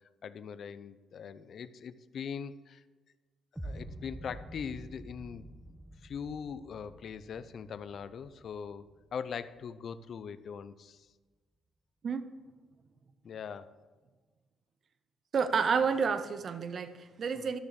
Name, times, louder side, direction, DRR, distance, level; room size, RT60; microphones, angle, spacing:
voice 1, 0.2-2.8 3.6-5.5 6.0-8.8 9.1-11.0 13.2-13.8 17.4-17.5, left 7 dB, 60° left, 0.6 m, -41 dB
sound 1, 3.6-9.6, right 1 dB, 5° right, 1.2 m, -48 dB
voice 2, 15.3-17.6, right 6 dB, 50° right, 0.8 m, -30 dB
12.5 x 6.9 x 6.6 m
cardioid pair, 90°, 0 cm